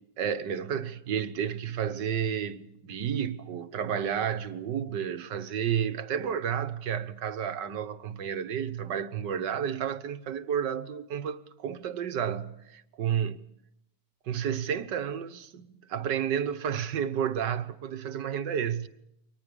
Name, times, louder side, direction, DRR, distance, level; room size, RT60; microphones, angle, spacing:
voice 1, 0.2-13.4 14.3-18.9, right 8 dB, 75° right, 1.8 m, -31 dB
29.5 x 25.0 x 5.2 m
omnidirectional pair, 1.9 m